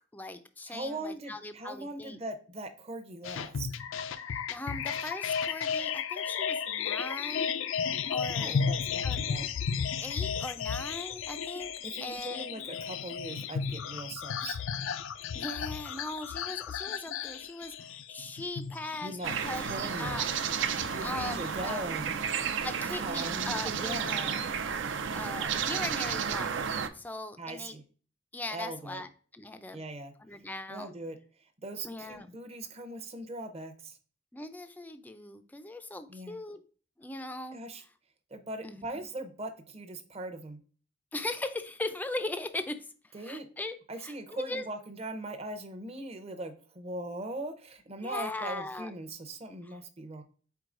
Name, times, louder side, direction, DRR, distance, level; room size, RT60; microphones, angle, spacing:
voice 1, 0.1-2.2 4.3-7.5 8.1-8.6 9.0-9.2 10.0-11.7 12.0-12.5 15.3-19.2 19.4-20.3 20.8-21.9 22.6-24.4 25.1-26.5 26.9-27.8 28.3-29.8 30.2-30.9 31.8-32.3 34.3-36.6 37.0-37.6 38.6-39.0 41.1-42.9 43.2-43.7 44.0-44.6 48.0-48.9 49.7-49.8, left 2 dB, 10° left, 9 dB, 0.4 m, -39 dB
voice 2, 0.7-3.7 8.4-9.5 11.8-14.6 19.0-20.3 20.9-22.2 22.5-22.6 23.0-24.4 27.4-27.8 28.5-29.0 29.7-30.1 30.7-34.0 36.1-36.4 37.5-37.8 38.3-40.6 43.1-43.5 43.9-50.2, right 1 dB, 30° right, 6 dB, 0.7 m, -40 dB
sound 1, 3.2-22.0, left 6 dB, 85° left, 0.4 m, -34 dB
sound 2, 19.2-26.9, right 7 dB, 70° right, 0.5 m, -32 dB
4.6 x 4.2 x 2.5 m, 0.41 s
head